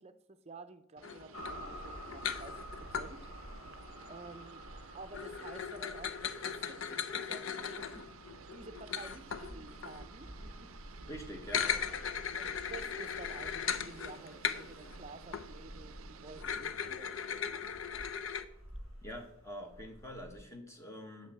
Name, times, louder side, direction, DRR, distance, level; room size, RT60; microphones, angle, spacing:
voice 1, 0.0-3.2 4.1-4.6 4.9-8.1 8.5-10.7 11.6-12.0 12.3-17.5, right 3 dB, 30° right, 9 dB, 0.6 m, -51 dB
sound 1, 1.0-3.1 5.1-10.1 11.4-15.0 15.3-15.5 16.4-18.4, left 7 dB, 75° left, 0.6 m, -38 dB
sound 2, 1.0-16.4, right 7 dB, 75° right, 0.4 m, -55 dB
sound 3, 1.3-20.4, equal, 90° left, 3.3 m, -50 dB
voice 2, 11.1-11.7 19.0-21.3, equal, 15° left, 4 dB, 1.3 m, -45 dB
7.9 x 5.8 x 7.7 m, 0.76 s
head